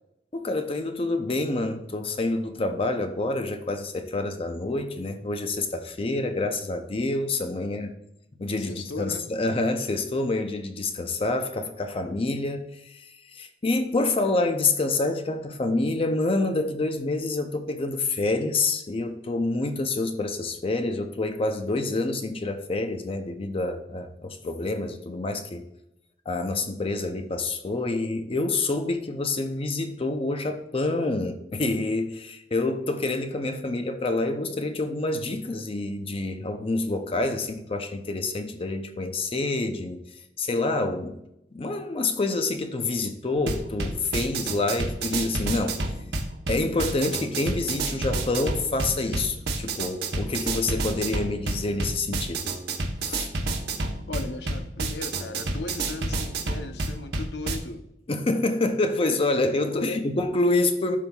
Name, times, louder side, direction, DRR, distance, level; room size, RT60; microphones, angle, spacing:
voice 1, 0.3-7.9 8.4-25.6 26.3-40.0 40.4-41.2 41.5-45.8 46.5-52.5 53.0-53.3 58.1-61.0, left 2 dB, 35° left, 0.5 m, -27 dB
voice 2, 8.6-9.3 54.1-57.9 59.7-60.0, left 2 dB, 70° left, 0.7 m, -36 dB
sound 1, 43.4-57.6, right 2 dB, 65° right, 1.0 m, -30 dB
12.0 x 5.3 x 2.3 m
head